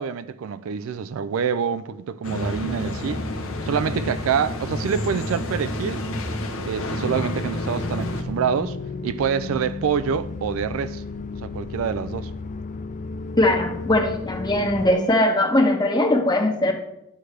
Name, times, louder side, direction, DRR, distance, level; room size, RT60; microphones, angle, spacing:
voice 1, 0.0-3.2 3.6-6.0 6.7-8.8 9.0-11.0 11.4-12.3, right 7 dB, 75° right, 0.4 m, -26 dB
sound 1, 2.2-8.2, left 1 dB, 70° left, 0.9 m, -29 dB
sound 2, 7.1-14.9, left 3 dB, 35° left, 0.4 m, -33 dB
voice 2, 13.4-16.7, left 1 dB, 20° left, 1.0 m, -20 dB
9.9 x 6.2 x 3.3 m
head